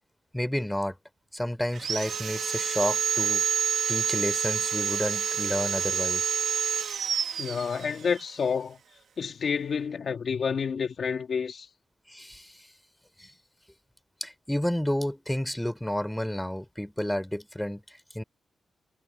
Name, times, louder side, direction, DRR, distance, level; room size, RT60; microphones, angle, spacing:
voice 1, 0.3-1.0 1.3-3.5 3.9-6.3 12.1-12.7 13.2-13.3 14.2-17.8 18.1-18.2, left 1 dB, 5° left, 5.2 m, -30 dB
Sawing, 1.7-8.2, right 7 dB, 75° right, 2.3 m, -28 dB
voice 2, 7.4-8.8 9.2-11.7, left 6 dB, 60° left, 3.3 m, -29 dB
cardioid pair, 80°, 0 cm